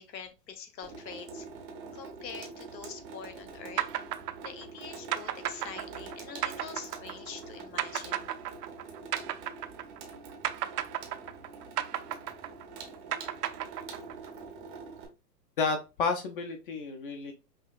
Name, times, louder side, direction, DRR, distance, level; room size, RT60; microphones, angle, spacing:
voice 1, 0.0-1.5 1.9-3.9 4.4-8.3, left 6 dB, 85° left, 8 dB, 0.9 m, -45 dB
Water tap faucet / Sink (filling or washing), 0.8-15.1, right 4 dB, 20° right, 0.5 m, -45 dB
sound 1, 3.8-10.1 10.4-14.3, right 12 dB, 70° right, 0.6 m, -34 dB
voice 2, 15.6-17.3, left 4 dB, 35° left, 5 dB, 0.5 m, -31 dB
5.4 x 2.3 x 2.4 m, 0.29 s
hypercardioid pair, 130°, 49 cm